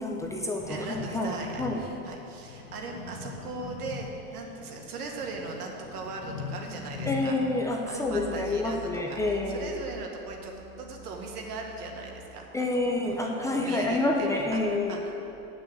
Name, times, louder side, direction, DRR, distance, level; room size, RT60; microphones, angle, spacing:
voice 1, 0.0-1.8 7.1-9.7 12.5-15.0, left 2 dB, 5° left, 0 dB, 0.6 m, -28 dB
sound 1, 0.6-8.1, left 5 dB, 35° left, 1.2 m, -41 dB
voice 2, 0.7-7.4 7.9-15.1, right 3 dB, 85° right, 1 dB, 1.8 m, -39 dB
sound 2, 8.0-10.0 10.3-12.2, right 3 dB, 50° right, 1.8 m, -46 dB
8.6 x 6.3 x 7.9 m, 2.8 s
supercardioid pair, 135°, 45 cm